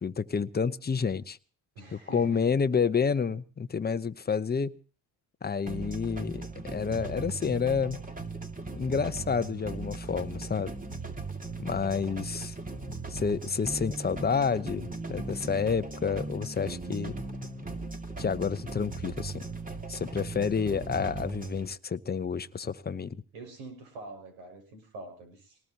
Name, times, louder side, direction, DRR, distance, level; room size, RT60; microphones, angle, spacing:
voice 1, 0.0-1.4 1.9-4.7 5.4-8.0 8.8-10.7 11.6-12.5 13.1-17.1 18.2-19.4 19.9-23.2, left 6 dB, 20° left, 0.9 m, -29 dB
voice 2, 1.7-2.5 23.3-25.6, right 2 dB, 80° right, 5.9 m, -45 dB
sound 1, 5.7-21.7, right 3 dB, 20° right, 2.4 m, -38 dB
25.0 x 19.0 x 2.9 m
supercardioid pair, 65°, 44 cm